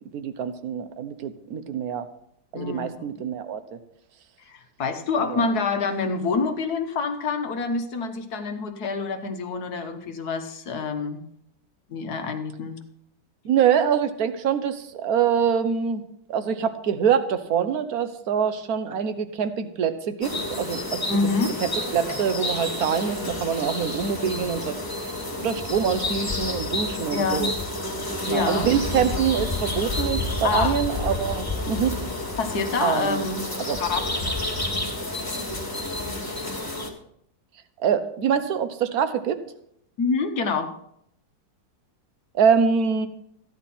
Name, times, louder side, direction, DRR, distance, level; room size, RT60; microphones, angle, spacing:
voice 1, 0.1-2.0 2.5-3.6 5.3-5.4 13.4-16.0 16.3-21.0 21.6-24.7 25.4-27.5 28.2-31.9 32.8-33.2 33.7-33.8 37.8-39.4 42.3-43.1, right 7 dB, 60° right, 10 dB, 1.3 m, -24 dB
voice 2, 2.5-3.2 4.4-11.2 11.9-12.8 21.1-21.6 27.1-27.5 28.3-28.7 30.4-30.8 32.4-33.4 33.8-34.1 40.0-40.7, left 4 dB, 60° left, 6 dB, 1.6 m, -27 dB
sound 1, 20.2-36.9, left 2 dB, 10° left, 1.5 m, -30 dB
14.5 x 10.5 x 4.3 m, 0.73 s
omnidirectional pair, 2.0 m